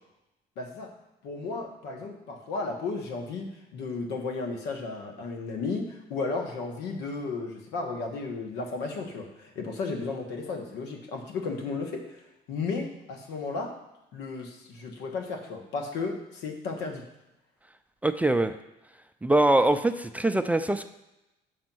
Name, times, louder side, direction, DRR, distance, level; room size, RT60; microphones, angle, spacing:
voice 1, 0.6-0.9 1.2-12.2 12.5-13.8 14.1-17.0, left 4 dB, 90° left, 3 dB, 1.4 m, -34 dB
voice 2, 18.0-18.5 19.2-20.9, right 1 dB, 10° right, 9 dB, 0.3 m, -23 dB
6.4 x 5.2 x 6.1 m, 0.94 s
cardioid pair, 110°, 17 cm